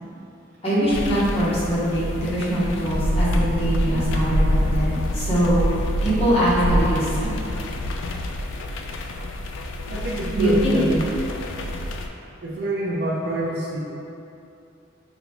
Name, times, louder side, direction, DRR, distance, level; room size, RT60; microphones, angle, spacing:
voice 1, 0.6-5.6 6.0-7.3 10.3-11.0, equal, 30° left, -10 dB, 1.0 m, -22 dB
sound 1, 0.9-12.1, equal, 70° left, 0.3 m, -26 dB
voice 2, 9.9-11.3 12.4-13.8, right 2 dB, 55° right, -3 dB, 0.5 m, -26 dB
5.1 x 2.3 x 2.9 m, 2.7 s
head